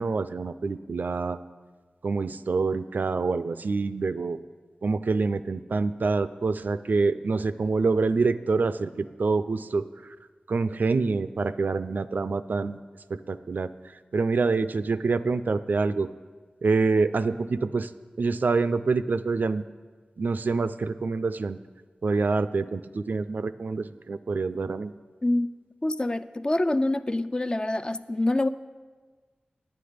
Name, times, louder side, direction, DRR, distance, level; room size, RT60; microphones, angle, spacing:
voice 1, 0.0-1.4 2.0-4.4 4.8-9.9 10.5-12.8 13.1-13.7 14.1-16.1 16.6-17.9 18.2-19.6 20.2-21.6 22.0-24.9, right 4 dB, 65° right, 0.4 m, -26 dB
voice 2, 25.2-25.5 25.8-28.5, left 1 dB, 25° left, 0.3 m, -26 dB
9.5 x 9.3 x 5.0 m
wide cardioid pair, 70°, 3 cm